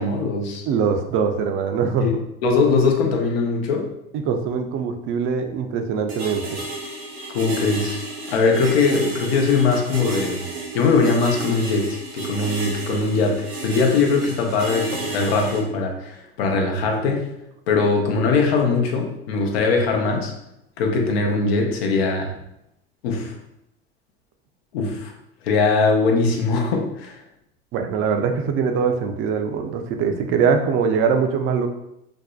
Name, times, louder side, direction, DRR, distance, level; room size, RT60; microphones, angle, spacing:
voice 1, 0.0-0.6 2.0-3.9 7.3-8.0 8.3-10.4 10.7-17.3 17.7-20.3 20.8-22.3 23.0-23.3 24.7-25.1 25.4-27.2, left 4 dB, 80° left, 2 dB, 0.6 m, -21 dB
voice 2, 0.7-2.1 4.1-6.6 27.7-31.7, right 6 dB, 45° right, 6 dB, 0.4 m, -22 dB
sound 1, 6.1-15.6, right 3 dB, 90° right, 0.8 m, -31 dB
2.6 x 2.1 x 2.3 m, 0.82 s
hypercardioid pair, 95°, 30 cm